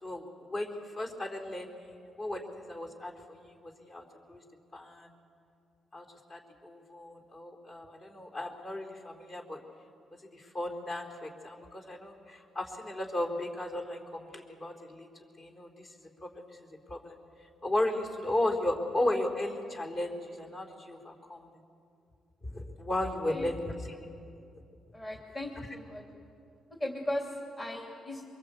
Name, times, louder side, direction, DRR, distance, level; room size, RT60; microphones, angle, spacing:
voice 1, 0.0-4.4 4.7-5.1 5.9-9.6 10.3-15.1 15.4-15.9 16.2-17.1 17.6-21.5 22.4-24.0 25.6-25.7, left 1 dB, 45° left, 2 dB, 4.0 m, -35 dB
voice 2, 24.9-26.0 26.8-28.3, left 1 dB, 25° left, 0 dB, 3.1 m, -37 dB
23.5 x 23.0 x 8.3 m, 2.5 s
cardioid pair, 90°, 0 cm